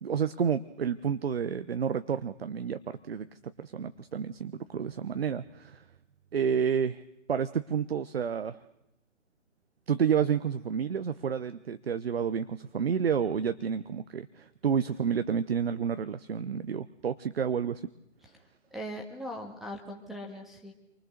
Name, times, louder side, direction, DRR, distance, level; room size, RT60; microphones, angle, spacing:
voice 1, 0.0-5.8 6.3-7.0 7.3-8.6 9.9-17.9, right 7 dB, 50° right, 12 dB, 1.0 m, -30 dB
voice 2, 18.7-20.7, equal, ahead, -3 dB, 1.7 m, -40 dB
30.0 x 24.0 x 6.7 m, 0.87 s
figure-of-eight pair, 135°, 38 cm